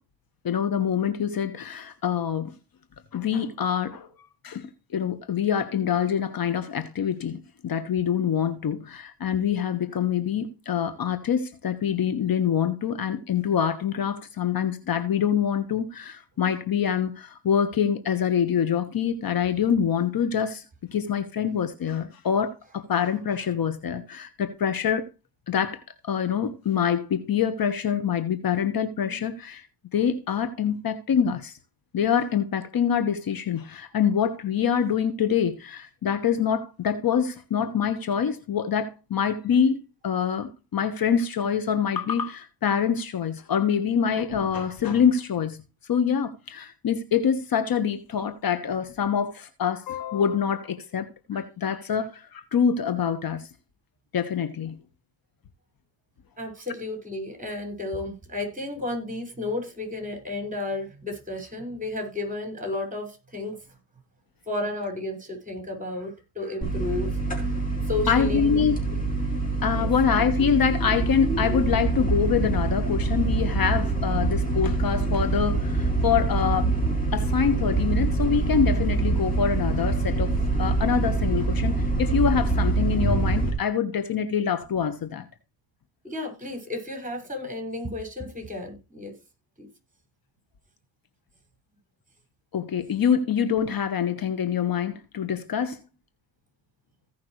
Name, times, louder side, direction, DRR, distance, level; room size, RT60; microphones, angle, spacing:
voice 1, 0.4-2.5 3.1-4.1 4.4-20.6 20.9-25.1 25.5-29.7 29.9-31.5 31.9-45.6 45.9-53.4 54.1-54.8 68.1-68.8 69.6-76.8 77.1-80.3 80.6-85.2 92.5-95.8, left 7 dB, 55° left, 1.4 m, -25 dB
voice 2, 56.4-63.6 64.5-67.6 67.8-69.0 69.7-69.9 86.0-89.1 89.6-89.7, left 2 dB, 20° right, 5.8 m, -33 dB
sound 1, 66.6-83.5, right 3 dB, 20° left, 4.1 m, -25 dB
16.5 x 5.8 x 3.2 m
cardioid pair, 75°, 44 cm